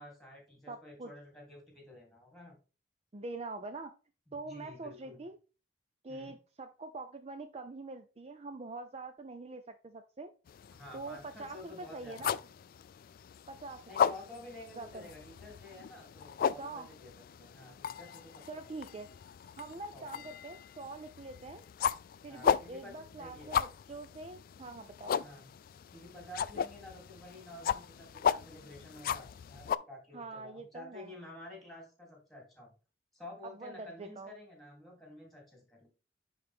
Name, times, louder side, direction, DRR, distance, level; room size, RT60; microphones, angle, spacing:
voice 1, 0.0-2.6 4.3-5.2 6.1-6.3 10.7-12.5 13.9-17.1 17.4-18.7 19.9-20.3 22.3-23.5 25.2-25.5 25.9-32.7 33.1-35.9, left 1 dB, ahead, -1 dB, 3.1 m, -51 dB
voice 2, 0.7-1.1 3.1-3.9 4.3-5.4 6.0-10.3 10.9-12.4 13.5-14.1 14.7-15.1 16.6-16.9 18.5-19.1 19.6-21.7 22.2-25.2 30.1-31.1 33.6-34.3, right 3 dB, 35° right, 8 dB, 0.5 m, -44 dB
sound 1, 10.5-29.8, left 8 dB, 55° left, 0.3 m, -36 dB
9.7 x 4.0 x 3.6 m, 0.34 s
head